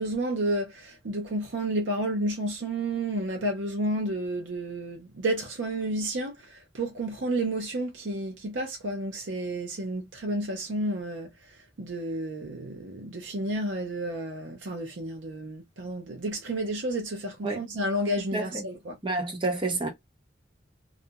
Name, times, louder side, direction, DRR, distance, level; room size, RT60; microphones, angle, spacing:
voice 1, 0.0-19.0, right 1 dB, 80° right, 0.6 m, -31 dB
voice 2, 18.3-18.6 19.0-19.9, right 2 dB, 25° right, 0.8 m, -29 dB
2.5 x 2.2 x 2.7 m
head